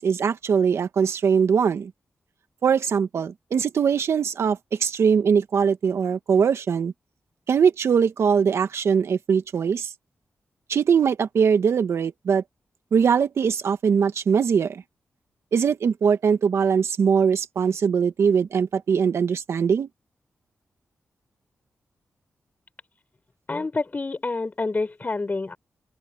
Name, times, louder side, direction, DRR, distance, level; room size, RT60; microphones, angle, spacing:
voice 1, 0.0-1.9 2.6-6.9 7.5-9.9 10.7-12.4 12.9-14.8 15.5-19.9, right 6 dB, 75° right, 1.7 m, -21 dB
voice 2, 23.5-25.6, left 3 dB, 40° left, 4.2 m, -28 dB
open air
cardioid pair, 50°, 5 cm